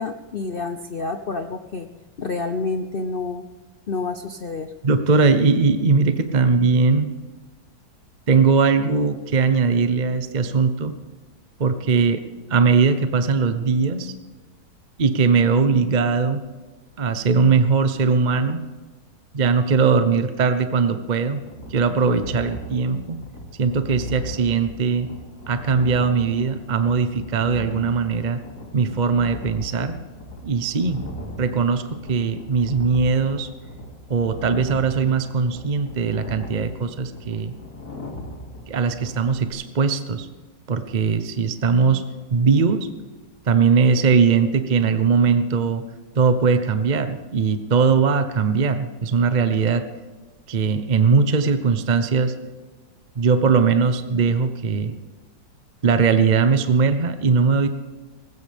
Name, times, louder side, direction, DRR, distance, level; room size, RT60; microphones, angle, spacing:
voice 1, 0.0-1.9 2.2-3.4 3.9-4.7, left 3 dB, 80° left, 7 dB, 0.5 m, -28 dB
voice 2, 4.8-7.1 8.3-10.9 11.6-12.2 12.5-14.1 15.0-16.4 17.0-18.6 19.3-21.4 21.7-23.2 23.6-25.1 25.5-28.4 28.7-30.0 30.4-31.0 31.4-33.5 34.1-37.5 38.7-40.3 40.7-42.1 42.3-42.9 43.5-45.8 46.1-49.8 50.5-52.3 53.2-54.9 55.8-57.7, right 5 dB, 40° right, 9 dB, 0.6 m, -20 dB
sound 1, 21.4-39.5, left 1 dB, 55° left, 3.2 m, -38 dB
19.5 x 16.0 x 3.5 m, 1.3 s
omnidirectional pair, 1.9 m